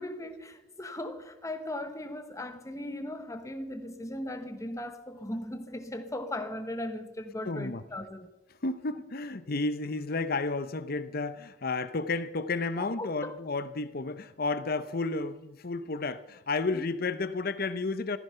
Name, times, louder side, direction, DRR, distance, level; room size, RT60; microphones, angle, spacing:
voice 1, 0.0-8.3 12.8-13.3 16.7-16.8, left 1 dB, 15° left, 1.2 m, -38 dB
voice 2, 7.4-7.8 8.6-18.2, left 3 dB, 50° left, 0.8 m, -32 dB
14.5 x 14.0 x 5.7 m
head